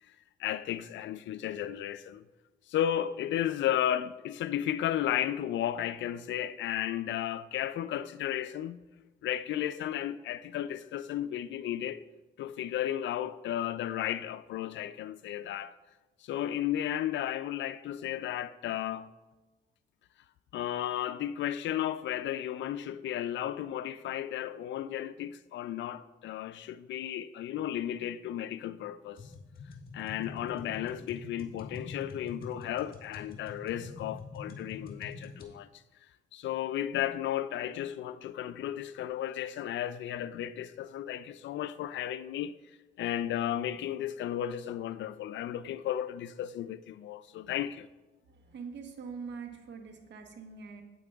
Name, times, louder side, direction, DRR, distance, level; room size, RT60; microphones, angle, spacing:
voice 1, 0.4-2.2 2.7-8.8 9.2-12.0 12.4-15.7 16.2-19.1 20.5-29.2 29.9-35.7 36.3-42.5 43.0-47.9, left 11 dB, 70° left, 0.4 m, -34 dB
sound 1, 29.2-35.5, left 4 dB, 50° left, 1.7 m, -45 dB
voice 2, 48.2-50.8, right 5 dB, 60° right, 1.3 m, -44 dB
8.8 x 8.4 x 3.5 m
cardioid pair, 90°, 20 cm